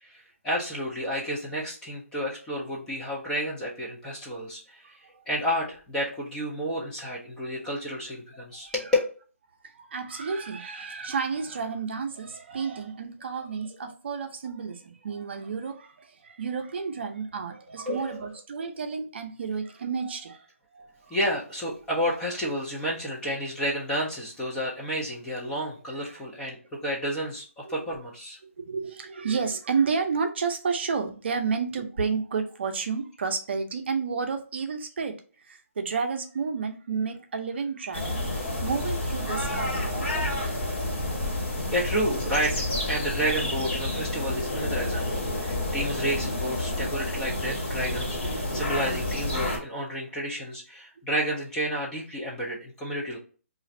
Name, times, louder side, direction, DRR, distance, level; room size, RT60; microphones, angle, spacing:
voice 1, 0.0-5.0 5.3-9.0 17.9-18.3 21.1-28.4 41.7-42.5 42.9-53.2, equal, 5° left, 0.4 m, -30 dB
voice 2, 8.3-8.7 9.6-20.4 20.7-21.2 25.9-26.2 27.7-27.9 28.4-35.2 35.4-38.3 38.6-40.4 47.7-48.6, right 5 dB, 50° right, 0.6 m, -31 dB
sound 1, 37.9-49.6, left 1 dB, 50° left, 1.4 m, -29 dB
2.5 x 2.4 x 4.1 m
hypercardioid pair, 165°, 8 cm